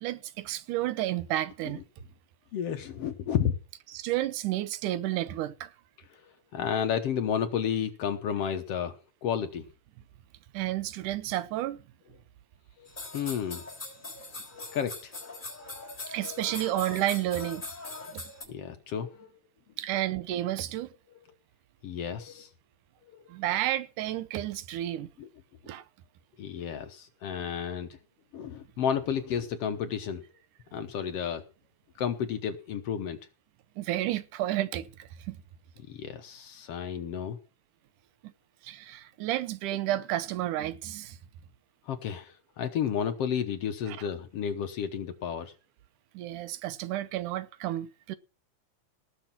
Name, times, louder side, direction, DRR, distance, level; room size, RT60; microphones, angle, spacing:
voice 1, 0.0-1.8 3.9-5.7 10.5-11.8 16.1-17.7 18.1-18.2 19.8-20.9 23.3-25.1 25.6-25.8 33.8-35.4 38.2-38.3 38.6-41.2 43.9-44.0 46.1-48.2, right 14 dB, 85° right, 2.4 m, -31 dB
voice 2, 2.5-3.6 6.5-9.0 9.2-9.7 12.8-12.9 13.1-13.6 14.5-15.4 15.6-15.9 16.2-16.4 18.5-19.3 21.8-22.5 23.1-23.2 25.2-25.3 26.4-28.0 28.3-30.2 30.7-31.4 32.0-33.2 35.9-37.4 41.9-45.5, left 8 dB, 65° left, 1.8 m, -32 dB
sound 1, 12.9-18.4, left 3 dB, 15° left, 3.6 m, -41 dB
18.5 x 6.5 x 5.8 m
omnidirectional pair, 3.5 m